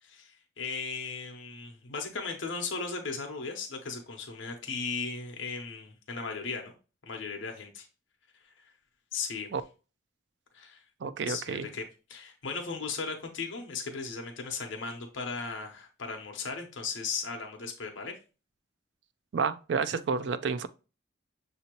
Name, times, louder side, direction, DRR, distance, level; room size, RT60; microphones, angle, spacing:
voice 1, 0.0-6.7 7.1-7.9 8.6-8.7 9.1-9.5 10.5-10.8 11.3-18.1, left 4 dB, 70° left, 0.8 m, -37 dB
voice 2, 11.0-11.7 19.3-20.7, right 5 dB, 60° right, 0.4 m, -30 dB
6.6 x 2.7 x 2.9 m
head